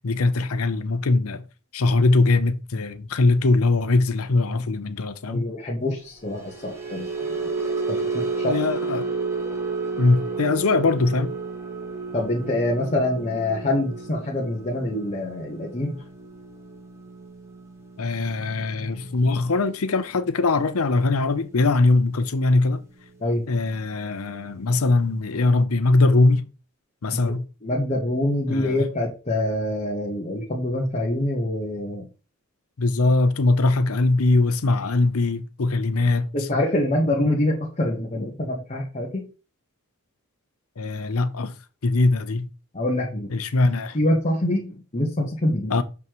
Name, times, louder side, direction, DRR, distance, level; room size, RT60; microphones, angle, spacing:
voice 1, 0.0-1.4 1.7-5.5 8.4-9.1 10.0-11.3 18.0-22.8 23.5-26.4 27.0-27.4 28.5-28.9 32.8-36.3 40.8-41.5 41.8-42.5 43.3-44.0 45.7-45.8, left 3 dB, 90° left, 0.7 m, -21 dB
voice 2, 5.3-7.5 7.9-8.5 12.1-16.0 23.2-23.4 27.2-27.3 27.6-32.1 36.3-39.3 42.7-43.3 43.9-45.8, left 1 dB, 35° left, 1.2 m, -25 dB
sound 1, 6.2-22.6 22.9-23.2 23.6-23.8, right 4 dB, 15° right, 1.3 m, -33 dB
6.4 x 5.5 x 3.1 m
head